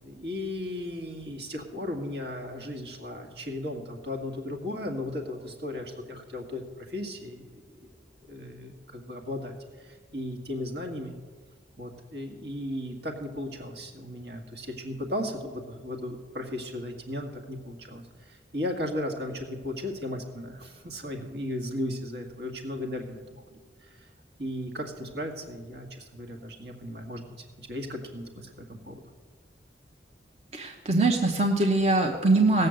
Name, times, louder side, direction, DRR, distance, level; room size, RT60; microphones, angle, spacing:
voice 1, 0.0-7.6 8.3-11.2 11.8-24.1 24.4-27.2 27.6-28.9, left 1 dB, 70° right, 2 dB, 2.0 m, -36 dB
voice 2, 30.5-32.7, right 2 dB, 35° right, 2 dB, 0.9 m, -22 dB
17.5 x 6.7 x 7.8 m, 1.5 s
head